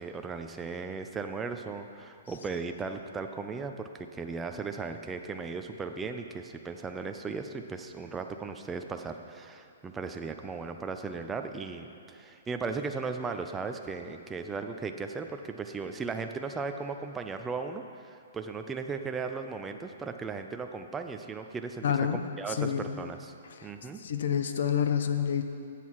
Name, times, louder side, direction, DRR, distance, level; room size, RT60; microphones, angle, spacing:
voice 1, 0.0-21.8 22.1-23.3 23.6-24.0, right 4 dB, 10° right, 6 dB, 0.4 m, -37 dB
voice 2, 21.8-22.2 22.5-23.0 23.5-23.7 24.0-25.4, left 8 dB, 60° left, 8 dB, 0.7 m, -28 dB
13.0 x 8.3 x 4.7 m, 2.4 s
hypercardioid pair, 170°, 0 cm